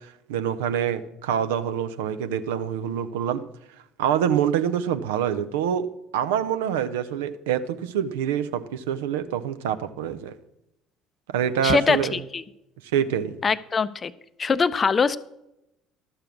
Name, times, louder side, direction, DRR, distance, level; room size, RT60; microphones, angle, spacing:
voice 1, 0.3-3.4 4.0-5.9 6.1-10.3 11.3-12.2 12.9-13.3, right 9 dB, 70° right, 11 dB, 0.6 m, -26 dB
voice 2, 11.6-12.4 13.4-14.1 14.4-15.2, left 5 dB, 30° left, 16 dB, 0.5 m, -22 dB
12.5 x 6.8 x 5.9 m, 0.87 s
figure-of-eight pair, 55°, 0 cm